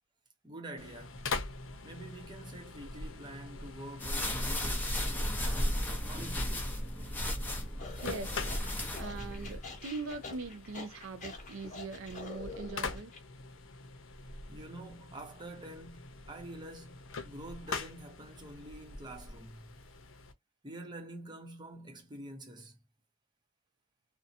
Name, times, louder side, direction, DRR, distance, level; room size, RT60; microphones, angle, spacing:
voice 1, 0.4-1.3 1.8-6.8 14.5-19.8 20.6-22.8, right 1 dB, 25° right, 0.8 m, -47 dB
sound 1, 0.8-20.3, left 4 dB, 80° left, 0.7 m, -44 dB
sound 2, 4.0-9.6, left 1 dB, 10° left, 0.7 m, -34 dB
sound 3, 7.8-13.2, left 4 dB, 40° left, 0.9 m, -46 dB
voice 2, 8.0-13.1, right 3 dB, 80° right, 0.5 m, -42 dB
2.7 x 2.1 x 2.6 m
head